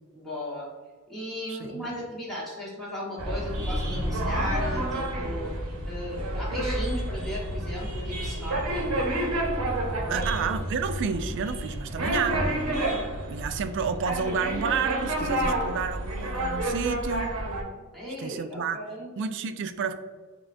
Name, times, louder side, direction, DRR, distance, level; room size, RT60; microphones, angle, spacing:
voice 1, 0.1-0.7 1.1-9.0 10.0-10.5 17.9-19.1, equal, ahead, -7 dB, 1.2 m, -36 dB
voice 2, 1.5-1.9 10.1-12.7 13.3-17.3 18.2-18.8 19.2-19.9, right 6 dB, 60° right, 9 dB, 0.3 m, -30 dB
sound 1, 3.2-17.6, right 1 dB, 80° right, 0.8 m, -29 dB
6.0 x 2.2 x 2.5 m, 1.4 s
head